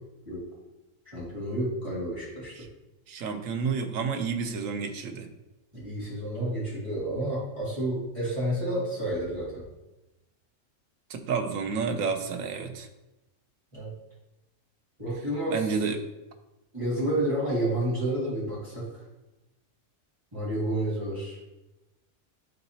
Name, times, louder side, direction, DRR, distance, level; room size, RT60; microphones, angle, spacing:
voice 1, 1.1-2.6 5.7-9.6 13.7-13.9 15.0-15.7 16.7-19.0 20.3-21.4, right 1 dB, 25° right, -9 dB, 2.4 m, -30 dB
voice 2, 3.1-5.3 11.1-12.9 15.5-16.0, right 5 dB, 90° right, 7 dB, 1.1 m, -30 dB
10.0 x 3.9 x 2.8 m, 0.98 s
omnidirectional pair, 1.3 m